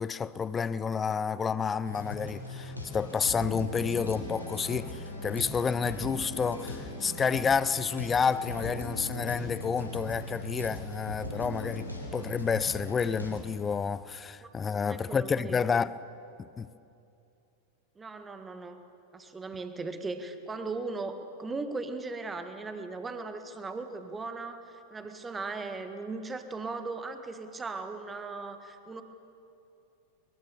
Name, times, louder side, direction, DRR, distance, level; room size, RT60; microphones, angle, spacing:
voice 1, 0.0-15.9 16.4-16.7, left 6 dB, 20° left, 0.6 m, -30 dB
sound 1, 1.8-13.4, left 1 dB, 90° left, 3.7 m, -39 dB
voice 2, 14.8-15.6 17.9-18.8 19.1-29.0, right 3 dB, 15° right, 1.7 m, -38 dB
22.5 x 22.0 x 7.1 m
figure-of-eight pair, 90°, 0 cm